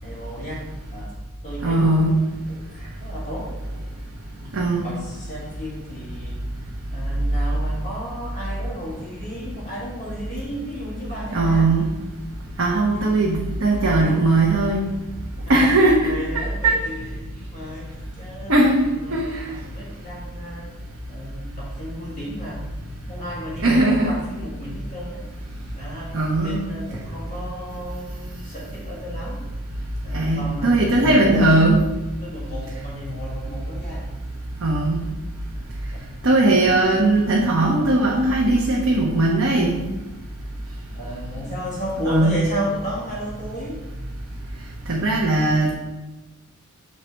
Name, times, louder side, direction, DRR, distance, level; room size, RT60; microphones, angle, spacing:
voice 1, 0.0-1.1 1.4-2.1 2.5-3.6 4.4-4.5 4.8-6.4 6.9-11.8 15.5-20.7 21.1-22.7 23.1-25.2 25.7-29.4 30.0-31.8 32.2-34.1 35.5-35.6 35.9-36.1 36.3-36.4 40.9-43.8, equal, 35° left, -6 dB, 1.9 m, -33 dB
voice 2, 1.6-2.2 4.5-4.9 11.3-11.9 12.6-14.9 15.5-16.8 18.5-19.4 23.6-24.1 26.1-26.7 30.1-31.8 34.6-35.0 36.2-39.8 42.1-42.4 44.9-45.7, right 2 dB, 65° right, -3 dB, 0.9 m, -19 dB
6.5 x 4.1 x 4.4 m, 1.1 s
head